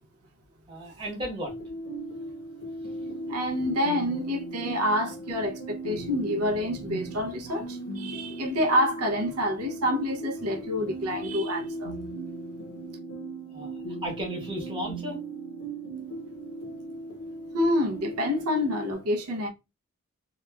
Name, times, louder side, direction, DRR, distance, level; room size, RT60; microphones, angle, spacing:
voice 1, 0.7-1.5 13.5-13.8 14.0-15.2, equal, 20° right, 0.9 m, -34 dB
sound 1, 1.5-18.9, right 2 dB, 60° left, 0.7 m, -38 dB
voice 2, 3.3-12.0 17.5-19.5, left 1 dB, 90° right, 0.6 m, -27 dB
2.8 x 2.3 x 2.2 m
head